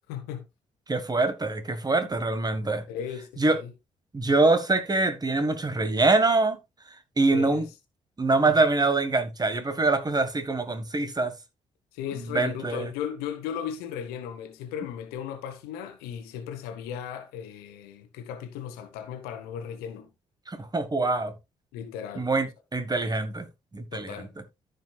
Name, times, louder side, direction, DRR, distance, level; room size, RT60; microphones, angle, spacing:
voice 1, 0.1-0.4 2.9-3.7 7.3-7.7 8.5-8.6 11.9-20.1 21.7-22.3 23.9-24.3, left 8 dB, 70° left, 1.3 m, -36 dB
voice 2, 0.9-2.8 3.4-3.6 4.1-6.6 7.2-7.7 8.2-11.3 12.3-12.9 20.5-21.3 22.2-23.5 23.7-24.3, right 3 dB, 25° right, 1.7 m, -24 dB
14.5 x 5.4 x 2.4 m
figure-of-eight pair, 40°, 16 cm